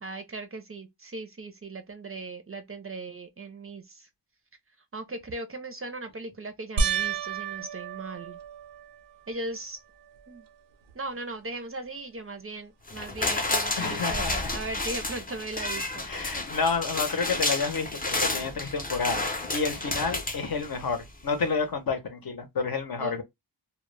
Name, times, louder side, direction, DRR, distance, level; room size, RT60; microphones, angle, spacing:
voice 1, 0.0-4.1 4.9-8.4 9.3-9.8 10.3-10.5 10.9-16.6 23.0-23.2, right 2 dB, 35° right, 0.5 m, -38 dB
sound 1, 6.8-9.4 10.0-10.6 10.9-11.0 14.2-14.3, right 5 dB, 85° right, 0.5 m, -32 dB
sound 2, 12.9-21.0 21.4-21.5, left 2 dB, 20° left, 0.5 m, -31 dB
voice 2, 13.8-14.5 16.1-19.3 19.5-23.2, left 5 dB, 60° left, 0.7 m, -29 dB
2.1 x 2.0 x 3.1 m
wide cardioid pair, 95°, 42 cm